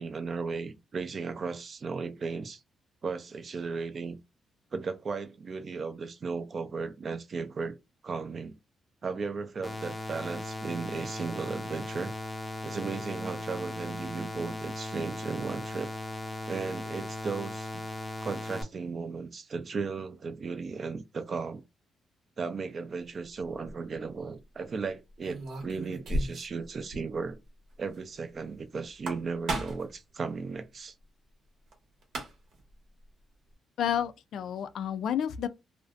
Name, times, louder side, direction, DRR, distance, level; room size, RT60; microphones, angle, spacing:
voice 1, 0.0-2.6 3.0-4.2 4.7-7.8 8.0-8.6 9.0-12.1 12.6-15.9 16.5-17.7 18.2-21.6 22.4-27.4 27.8-30.9, right 4 dB, 40° right, 0.4 m, -35 dB
sound 1, 9.6-18.6, left 1 dB, 15° left, 0.5 m, -38 dB
sound 2, 23.4-23.7 25.2-26.6 26.9-27.0 27.3-27.4 28.8-30.0 31.7-31.8 32.0-32.6, right 1 dB, 70° right, 0.9 m, -34 dB
voice 2, 33.8-35.5, left 9 dB, 70° left, 0.3 m, -30 dB
2.5 x 2.1 x 2.4 m
cardioid pair, 125°, 0 cm